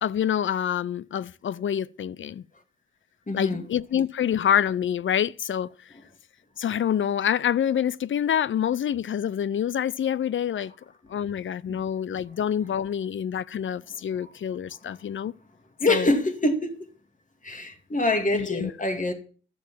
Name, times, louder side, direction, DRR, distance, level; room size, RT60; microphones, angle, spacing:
voice 1, 0.0-2.4 3.3-5.7 6.6-10.7 11.1-15.3 15.9-16.1 18.3-18.7, left 9 dB, 70° left, 0.5 m, -26 dB
voice 2, 3.3-3.7 11.7-11.8 14.2-14.3 14.9-15.0 15.8-16.8 17.4-19.1, left 2 dB, 40° left, 2.4 m, -25 dB
12.5 x 7.1 x 7.4 m
cardioid pair, 75°, 21 cm